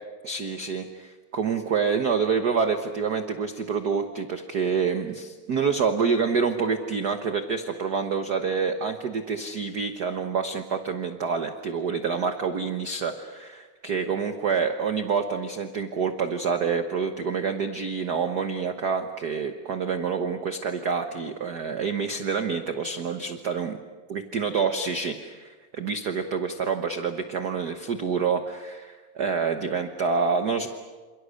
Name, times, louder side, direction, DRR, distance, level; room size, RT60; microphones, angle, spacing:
voice 1, 0.2-23.8 24.1-30.7, right 5 dB, 55° right, 7 dB, 1.1 m, -27 dB
28.0 x 28.0 x 6.5 m, 1.4 s
omnidirectional pair, 3.4 m